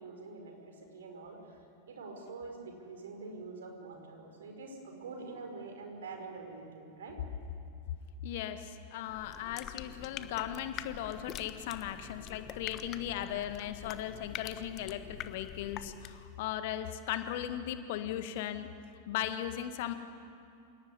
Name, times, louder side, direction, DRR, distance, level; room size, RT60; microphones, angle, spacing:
voice 1, 0.0-1.6 1.9-7.2, right 3 dB, 65° right, 3 dB, 5.6 m, -45 dB
voice 2, 8.2-18.7 19.1-19.9, left 11 dB, 50° left, 9 dB, 1.7 m, -37 dB
sound 1, 9.1-16.3, left 11 dB, 35° left, 1.2 m, -45 dB
27.5 x 18.5 x 9.9 m, 2.5 s
figure-of-eight pair, 90°, 0 cm